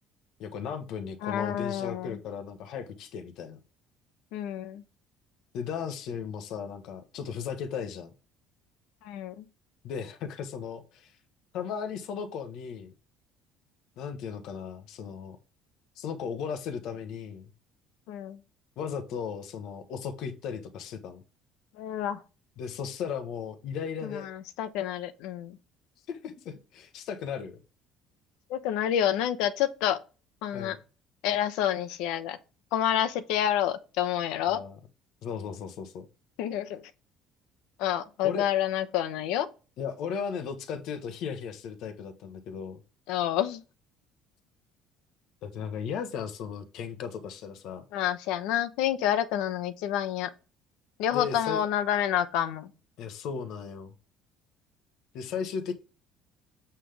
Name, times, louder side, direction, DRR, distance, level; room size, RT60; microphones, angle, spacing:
voice 1, 0.4-3.6 5.5-8.1 9.8-11.1 11.5-12.9 14.0-15.4 16.0-17.5 18.8-21.2 22.6-24.3 26.1-27.6 30.5-30.8 34.5-34.8 35.2-36.1 38.2-38.5 39.8-42.8 45.4-47.8 51.1-51.6 53.0-53.9 55.1-55.7, left 7 dB, 55° left, 1.2 m, -36 dB
voice 2, 1.2-2.2 4.3-4.8 9.0-9.4 18.1-18.4 21.8-22.2 24.0-25.6 28.5-30.0 30.4-30.8 31.2-32.4 32.7-34.6 36.4-36.9 37.8-39.5 43.1-43.6 47.9-50.3 51.0-52.7, left 11 dB, 85° left, 0.9 m, -28 dB
8.4 x 5.7 x 3.4 m
cardioid pair, 175°, 0 cm